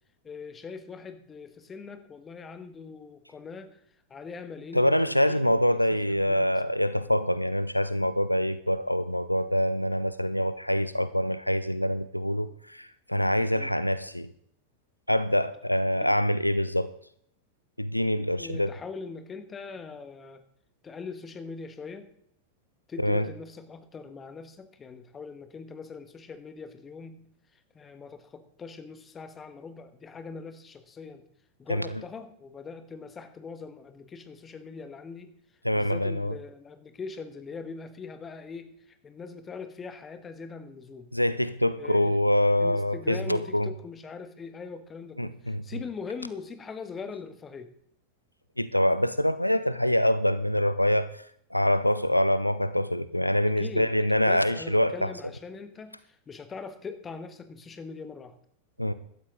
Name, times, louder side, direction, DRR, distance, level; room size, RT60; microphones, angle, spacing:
voice 1, 0.2-3.8 4.1-6.9 13.5-13.7 15.9-16.3 18.4-20.4 20.8-22.1 22.9-27.3 27.5-31.2 31.6-35.3 35.7-41.1 41.8-42.2 42.6-47.7 53.5-53.9 54.3-58.3, left 5 dB, 20° left, 1.6 m, -41 dB
voice 2, 4.7-14.3 15.1-16.9 17.8-18.7 23.0-23.3 31.7-31.9 35.6-36.3 41.1-43.7 45.2-45.6 48.6-51.2 51.5-55.1 58.8-58.9, equal, 90° left, 0.5 m, -25 dB
16.0 x 12.5 x 3.8 m
figure-of-eight pair, 90°, 0 cm